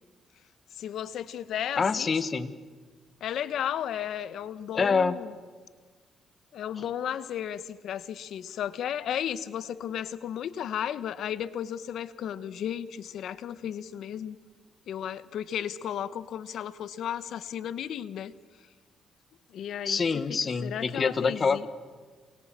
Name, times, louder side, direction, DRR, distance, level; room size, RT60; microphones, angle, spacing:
voice 1, 0.8-2.1 3.2-5.3 6.5-14.4 14.9-18.3 19.5-20.2 20.6-21.7, left 9 dB, 70° left, 15 dB, 1.1 m, -34 dB
voice 2, 1.8-2.5 4.7-5.2 19.8-21.7, left 5 dB, 40° left, 13 dB, 1.4 m, -26 dB
28.0 x 23.0 x 7.5 m, 1.5 s
cardioid pair, 90°, 0 cm